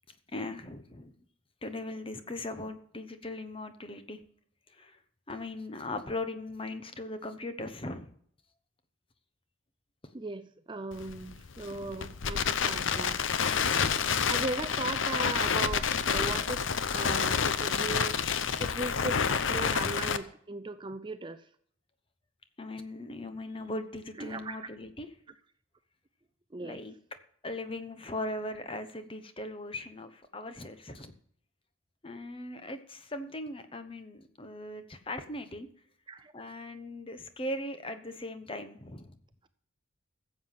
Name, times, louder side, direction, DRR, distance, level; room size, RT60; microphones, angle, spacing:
voice 1, 0.3-1.1 1.6-4.2 4.7-5.0 5.3-8.1 11.7-11.9 16.2-16.5 18.4-18.9 22.6-25.1 26.6-26.9 27.4-31.1 32.0-35.7 36.3-39.1, left 1 dB, 25° left, 9 dB, 1.0 m, -39 dB
voice 2, 10.1-13.2 14.3-16.6 16.9-18.2 18.6-21.4 24.2-24.7 26.5-26.8 36.1-36.3, right 2 dB, 20° right, 11 dB, 0.5 m, -37 dB
Crackle, 10.9-20.2, left 6 dB, 65° left, 0.7 m, -29 dB
14.5 x 7.6 x 5.8 m, 0.62 s
head